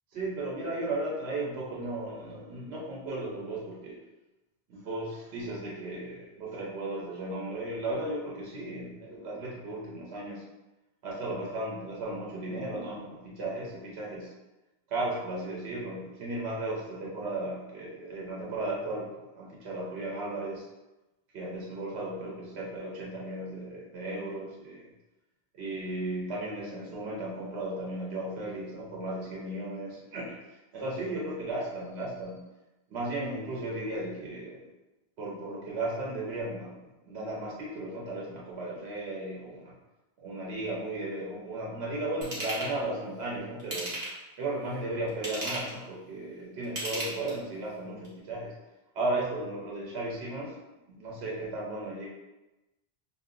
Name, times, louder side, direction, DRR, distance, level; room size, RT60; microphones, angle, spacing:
voice 1, 0.1-4.0 4.7-10.4 11.0-14.3 14.9-19.1 19.3-20.7 21.3-24.8 25.5-30.4 30.7-32.5 32.9-34.6 35.2-36.8 37.1-39.7 40.2-43.9 44.4-48.5 48.9-50.5 50.9-52.1, right 2 dB, 80° right, -5 dB, 0.9 m, -35 dB
Ratchet pawl / Tools, 42.2-42.7 43.6-44.3 45.1-45.8 46.6-47.5 48.0-48.1, right 1 dB, 45° right, 0.9 m, -35 dB
2.2 x 2.0 x 3.6 m, 1.0 s
omnidirectional pair, 1.1 m